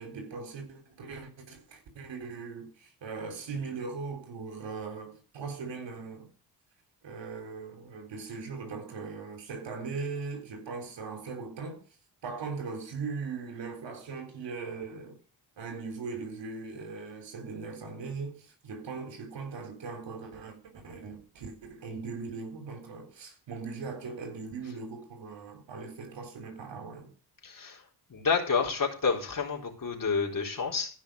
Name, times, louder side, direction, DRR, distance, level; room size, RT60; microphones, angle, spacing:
voice 1, 0.0-6.3 7.0-11.8 12.2-15.2 15.6-27.1, right 4 dB, 80° right, 3.8 m, -39 dB
voice 2, 27.4-27.8 28.1-30.9, left 5 dB, 50° left, 4.0 m, -29 dB
14.5 x 5.8 x 6.4 m
cardioid pair, 65°, 43 cm